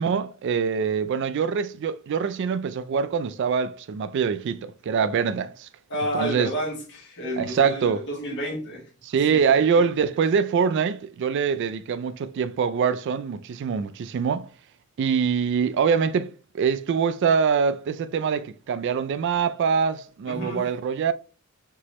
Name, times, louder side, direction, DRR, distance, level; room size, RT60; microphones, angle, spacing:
voice 1, 0.0-5.7 6.2-6.5 7.4-8.0 9.0-14.5 15.0-21.1, right 6 dB, 55° right, 0.3 m, -24 dB
voice 2, 5.9-8.8 9.1-9.4 9.7-9.8 20.3-20.7, equal, 55° left, 1.4 m, -31 dB
4.5 x 3.0 x 3.0 m
head